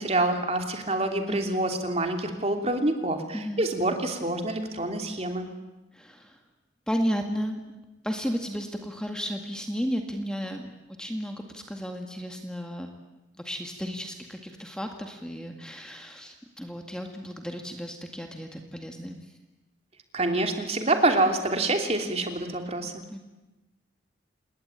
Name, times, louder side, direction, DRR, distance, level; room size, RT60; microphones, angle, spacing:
voice 1, 0.0-5.5 20.1-23.0, right 2 dB, 35° right, 5 dB, 3.0 m, -26 dB
voice 2, 1.3-1.7 3.3-3.7 5.9-6.4 6.9-7.8 8.0-10.7 11.0-12.9 13.4-19.2 23.1-23.2, equal, 5° left, 4 dB, 2.0 m, -33 dB
28.0 x 21.0 x 9.1 m, 1.0 s
head